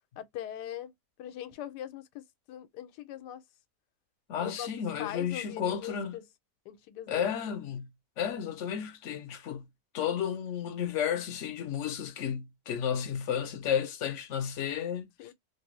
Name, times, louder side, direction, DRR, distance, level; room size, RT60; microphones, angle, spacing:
voice 1, 0.2-0.9 1.2-3.4 4.4-4.7 5.0-6.2 6.7-7.2 15.2-15.3, left 11 dB, 85° left, 1.2 m, -41 dB
voice 2, 4.3-6.2 7.1-7.9 8.2-9.6 9.9-15.3, left 8 dB, 60° left, 0.8 m, -32 dB
3.3 x 2.6 x 3.0 m
omnidirectional pair, 1.8 m